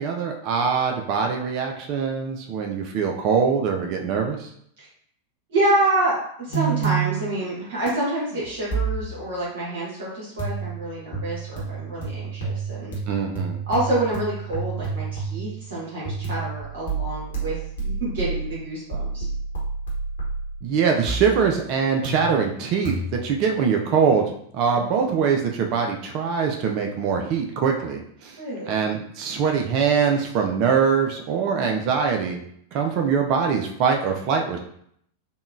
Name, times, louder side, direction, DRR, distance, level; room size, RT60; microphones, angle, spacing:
voice 1, 0.0-4.5 13.1-13.6 20.6-28.4 28.7-32.4 32.7-34.6, right 6 dB, 40° right, 2 dB, 0.4 m, -23 dB
voice 2, 5.5-12.9 13.7-19.3 24.7-24.8 28.4-28.7, right 1 dB, 55° right, -7 dB, 1.3 m, -27 dB
sound 1, 6.5-7.4 7.9-9.3 10.4-15.7 16.0-20.6 21.1-21.6 22.0-22.6 22.8-23.4, right 5 dB, 60° left, 1.0 m, -29 dB
3.6 x 2.2 x 2.4 m, 0.67 s
figure-of-eight pair, 90°, 0 cm